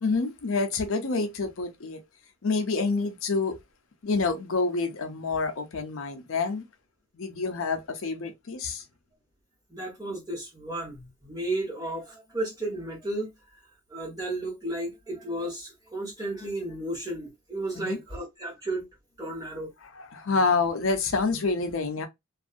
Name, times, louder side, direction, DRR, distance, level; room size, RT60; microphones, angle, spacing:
voice 1, 0.0-2.0 2.4-3.6 4.0-6.6 7.1-8.8 17.8-18.0 19.8-22.1, left 4 dB, 65° left, 0.6 m, -27 dB
voice 2, 9.7-13.3 13.9-18.9 19.2-19.7, right 1 dB, 15° right, 1.4 m, -33 dB
2.6 x 2.3 x 2.4 m
head